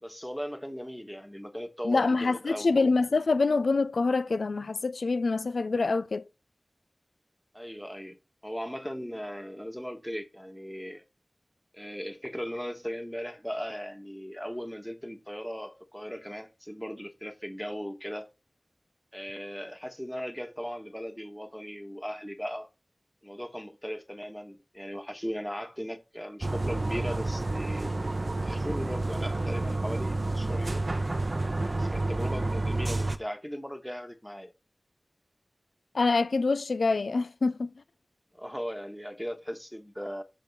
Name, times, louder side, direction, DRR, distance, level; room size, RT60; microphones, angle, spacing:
voice 1, 0.0-2.7 7.5-11.0 11.7-18.3 19.1-22.7 23.2-28.0 28.4-30.9 31.8-34.5 38.3-40.2, equal, 5° left, 1.2 m, -38 dB
voice 2, 1.8-6.2 35.9-37.7, left 3 dB, 90° left, 0.4 m, -26 dB
sound 1, 26.4-33.2, right 2 dB, 50° right, 0.7 m, -30 dB
7.4 x 3.6 x 5.3 m
wide cardioid pair, 45°, 0 cm